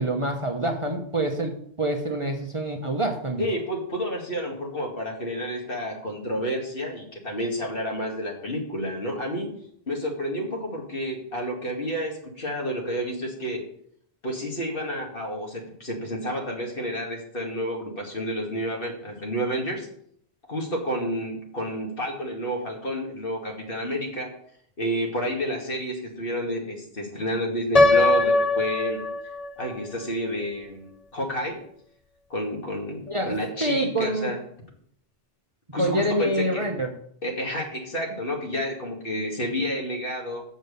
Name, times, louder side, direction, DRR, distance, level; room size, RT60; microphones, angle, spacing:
voice 1, 0.0-3.5 33.1-34.3 35.8-36.9, right 1 dB, 30° right, 3 dB, 0.9 m, -26 dB
voice 2, 3.4-9.5 9.9-13.6 14.2-19.9 20.5-24.3 24.8-29.0 29.6-30.9 31.1-31.6 32.3-34.4 35.7-36.7 37.2-40.4, equal, 60° left, 0 dB, 2.4 m, -30 dB
Piano, 27.8-29.7, left 2 dB, 40° left, 0.8 m, -20 dB
7.4 x 6.4 x 6.7 m, 0.66 s
omnidirectional pair, 1.1 m